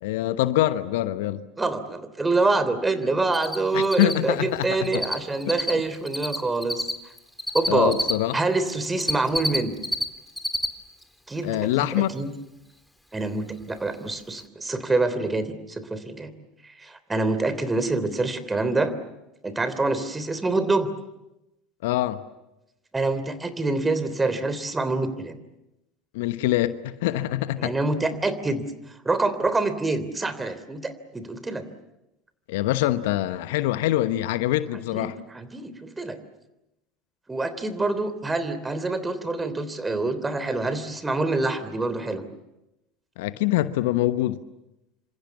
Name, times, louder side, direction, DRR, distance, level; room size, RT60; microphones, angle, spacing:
voice 1, 0.0-1.4 3.7-5.0 7.7-8.4 11.4-12.1 21.8-22.2 26.1-27.7 32.5-35.1 43.2-44.4, left 14 dB, 65° left, 13 dB, 1.1 m, -24 dB
voice 2, 1.6-6.8 7.5-8.0 8.3-9.7 11.3-12.3 13.1-16.3 16.8-18.9 19.4-20.9 22.9-25.4 27.6-28.6 29.0-31.6 34.9-36.2 37.3-42.2, right 3 dB, 15° right, 13 dB, 3.3 m, -26 dB
Cricket, 3.3-3.6 3.8-5.2 5.4-8.1 8.7-10.0 10.3-10.7 11.0-11.1 13.6-13.7 14.1-14.2 14.4-14.5, left 1 dB, 5° left, 3.1 m, -27 dB
28.0 x 26.0 x 7.3 m, 0.94 s
figure-of-eight pair, 75°, 0 cm